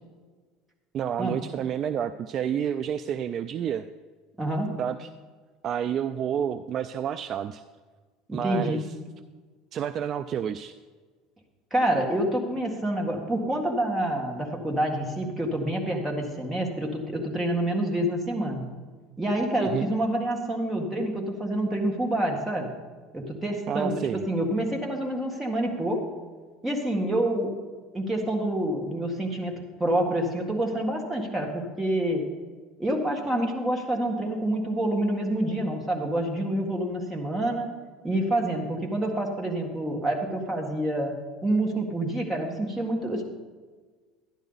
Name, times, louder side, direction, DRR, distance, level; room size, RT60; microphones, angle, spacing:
voice 1, 0.9-3.9 4.8-5.1 5.6-7.6 8.3-8.9 9.7-10.7 19.6-19.9 23.7-24.2, right 9 dB, 40° right, 11 dB, 0.3 m, -29 dB
voice 2, 4.4-4.7 8.3-8.8 11.7-18.6 19.2-22.7 23.1-24.0 24.3-26.1 26.6-27.5 27.9-32.3 32.8-37.7 38.0-41.1 41.4-43.2, right 1 dB, 10° right, 0 dB, 1.8 m, -27 dB
12.0 x 10.5 x 4.0 m, 1.4 s
supercardioid pair, 130°, 0 cm